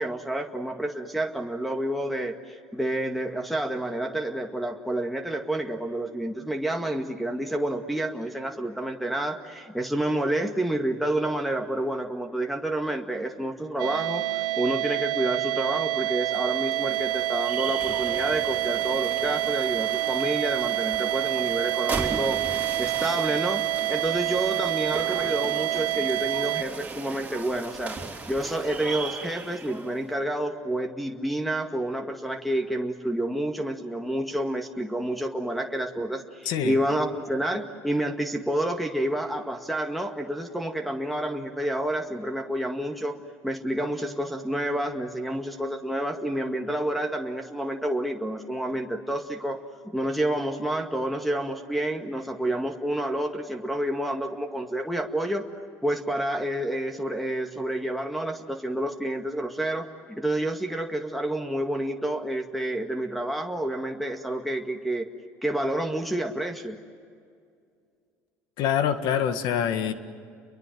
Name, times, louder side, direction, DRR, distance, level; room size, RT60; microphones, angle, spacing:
voice 1, 0.0-28.0 28.3-55.5 55.8-65.1 65.4-66.8, right 1 dB, ahead, 1 dB, 2.0 m, -29 dB
sound 1, 13.8-26.6, right 15 dB, 70° right, 1.8 m, -27 dB
sound 2, 16.0-30.1, right 4 dB, 20° right, 3.8 m, -37 dB
voice 2, 68.6-69.9, left 9 dB, 70° left, 10 dB, 1.8 m, -25 dB
30.0 x 23.0 x 7.7 m, 2.2 s
supercardioid pair, 75°, 8 cm